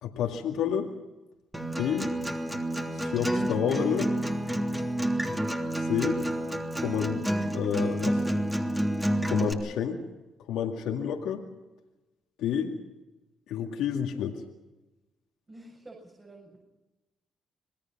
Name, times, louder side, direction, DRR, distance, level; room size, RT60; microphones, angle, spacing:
voice 1, 0.0-0.9 1.8-2.1 2.9-4.1 5.8-6.2 6.8-8.2 9.2-10.0 10.5-11.4 12.4-12.8 13.5-14.4, left 8 dB, 80° left, 2 dB, 2.1 m, -29 dB
Acoustic guitar, 1.5-9.5, right 1 dB, 10° right, 3.2 m, -29 dB
voice 2, 15.5-16.6, right 2 dB, 30° right, -1 dB, 7.1 m, -49 dB
27.0 x 19.0 x 6.1 m, 1.1 s
supercardioid pair, 65°, 0 cm